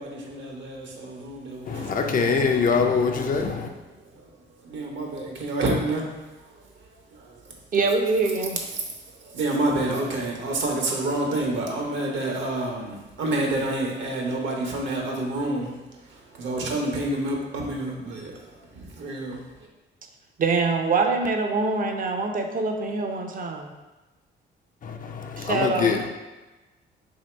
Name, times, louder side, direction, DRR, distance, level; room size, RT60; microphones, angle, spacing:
voice 1, 0.0-2.3 3.6-4.3 4.6-6.1 6.4-7.6 8.7-15.8 16.0-19.7, right 2 dB, 70° right, 0.9 m, -29 dB
voice 2, 1.7-3.7 24.8-26.1, left 5 dB, 45° left, 0.5 m, -24 dB
voice 3, 7.7-8.6 20.4-23.7 25.4-26.0, right 3 dB, 45° right, 0.6 m, -24 dB
2.9 x 2.8 x 4.3 m
cardioid pair, 90°, 20 cm